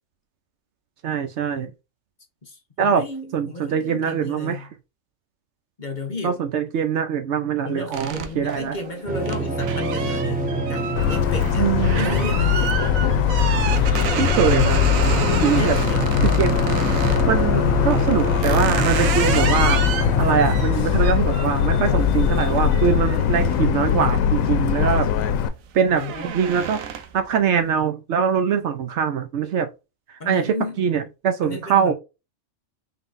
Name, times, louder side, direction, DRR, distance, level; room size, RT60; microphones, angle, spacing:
voice 1, 1.0-1.7 2.8-3.0 3.3-4.7 6.2-8.8 11.6-12.2 14.2-15.0 15.4-15.8 16.2-16.5 17.0-19.8 20.2-25.1 25.7-26.0 26.3-26.8 27.1-29.7 30.1-31.9, right 7 dB, 65° right, 0.8 m, -23 dB
voice 2, 2.4-4.7 5.8-6.4 7.6-11.7 12.0-12.8 15.4-16.1 25.9-26.4 30.2-30.8 31.4-31.9, left 2 dB, 40° left, 1.0 m, -33 dB
sound 1, 7.9-17.3 17.9-24.3 24.7-25.1 25.4-27.3, right 7 dB, 90° right, 1.1 m, -30 dB
sound 2, 9.1-20.7, right 3 dB, 10° right, 0.4 m, -27 dB
Motor vehicle (road) / Siren, 11.0-25.5, left 9 dB, 85° left, 1.0 m, -21 dB
3.9 x 3.7 x 2.5 m
omnidirectional pair, 1.4 m